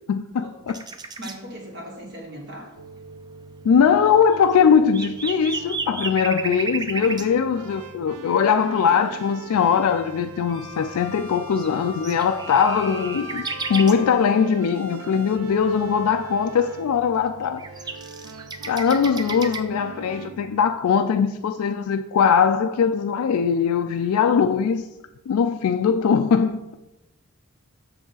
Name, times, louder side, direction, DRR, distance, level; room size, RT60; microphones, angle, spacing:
voice 1, 0.1-0.8 3.6-13.4 13.7-17.6 18.7-24.8 25.3-26.7, left 6 dB, 75° left, 0.3 m, -21 dB
sound 1, 0.7-1.4 4.3-7.3 7.9-8.0 8.3-8.4 8.8-8.9 9.2-9.3 11.3-14.0 17.2-19.6, right 4 dB, 20° right, 0.4 m, -33 dB
voice 2, 1.2-2.7, equal, 50° right, 1.2 m, -38 dB
sound 2, 2.8-20.6, right 4 dB, 85° right, 0.5 m, -41 dB
Wind instrument woodwind instrument, 10.5-14.6, left 9 dB, 20° left, 0.8 m, -41 dB
6.7 x 6.1 x 3.9 m
head